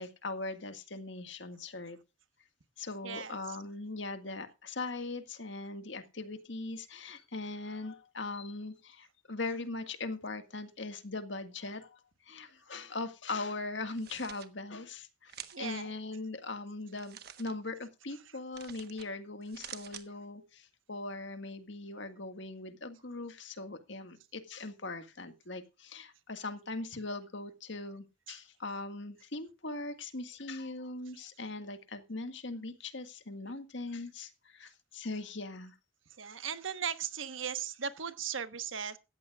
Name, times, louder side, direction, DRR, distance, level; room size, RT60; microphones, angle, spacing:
voice 1, 0.0-2.0 2.8-35.7, left 3 dB, 65° left, 1.8 m, -40 dB
voice 2, 3.0-3.3 15.5-15.9 36.2-39.0, right 7 dB, 75° right, 1.3 m, -37 dB
sound 1, 13.8-14.5 15.3-15.7 16.9-17.5 18.5-19.1 19.4-20.1, right 10 dB, 50° right, 1.2 m, -48 dB
17.0 x 14.0 x 2.4 m
head